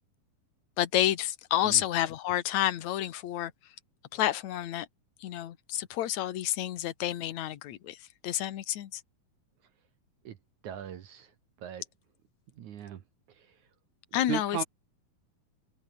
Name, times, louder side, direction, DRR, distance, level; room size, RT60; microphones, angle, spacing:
voice 1, 0.8-3.5 4.1-4.9 5.2-8.0 8.2-9.0 14.1-14.6, left 13 dB, 60° left, 2.3 m, -29 dB
voice 2, 10.6-11.3 11.6-11.8 12.6-13.0 13.4-13.5 14.3-14.6, right 9 dB, 60° right, 2.6 m, -37 dB
omnidirectional pair, 4.4 m